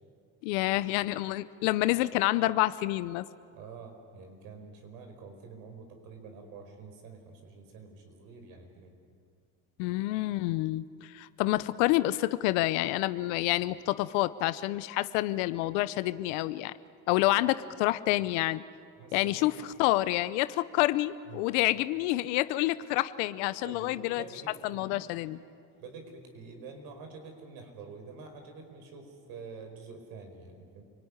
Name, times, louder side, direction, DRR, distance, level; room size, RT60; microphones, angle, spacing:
voice 1, 0.4-3.2 9.8-16.7 17.1-18.6 19.1-19.5 19.8-24.2 24.6-25.4, left 17 dB, 85° left, 15 dB, 0.8 m, -28 dB
voice 2, 3.5-9.0 19.0-19.6 21.3-21.5 23.6-25.0 25.8-30.8, right 4 dB, 80° right, 5 dB, 4.9 m, -47 dB
28.0 x 19.5 x 9.8 m, 2.3 s
supercardioid pair, 85°, 35 cm